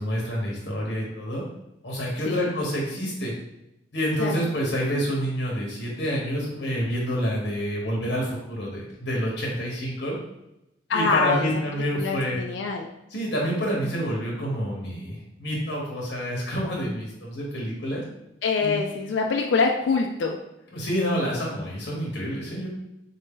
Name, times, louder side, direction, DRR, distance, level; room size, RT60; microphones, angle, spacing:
voice 1, 0.0-1.4 1.8-3.3 3.9-10.2 10.9-12.4 13.1-18.0 18.6-18.8 20.7-22.7, equal, 65° left, -3 dB, 1.1 m, -28 dB
voice 2, 10.9-11.5 11.9-12.9 18.4-20.4, left 4 dB, 80° left, 2 dB, 0.4 m, -25 dB
3.9 x 2.7 x 3.7 m, 0.87 s
head